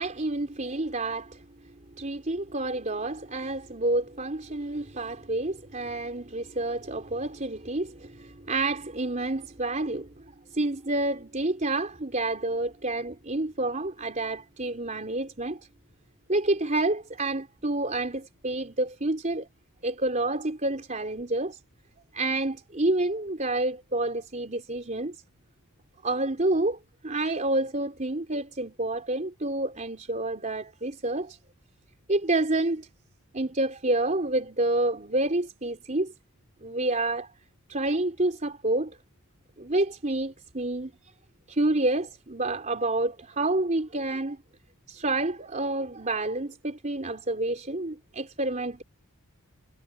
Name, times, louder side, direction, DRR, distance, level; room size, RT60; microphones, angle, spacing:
voice 1, 0.0-1.4 2.0-10.1 10.5-15.6 16.3-19.5 19.8-21.6 22.1-25.2 26.0-26.8 27.0-31.4 32.1-32.9 33.3-36.1 36.6-37.3 37.7-39.0 39.6-40.9 41.5-44.4 44.9-48.8, right 2 dB, 35° right, 3.7 m, -28 dB
head